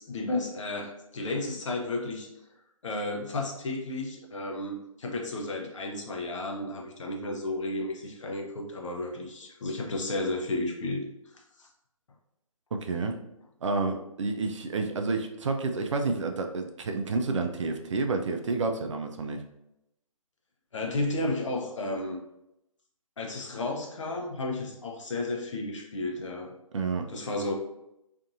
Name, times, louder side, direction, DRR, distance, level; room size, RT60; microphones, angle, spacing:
voice 1, 0.0-2.3 2.8-11.7 20.7-22.2 23.2-26.5 27.1-27.5, left 2 dB, 60° left, 1 dB, 0.7 m, -33 dB
voice 2, 12.7-13.2 13.6-19.4 26.7-27.1, right 3 dB, 55° right, 5 dB, 0.4 m, -29 dB
2.6 x 2.6 x 2.5 m, 0.84 s
figure-of-eight pair, 145°, 18 cm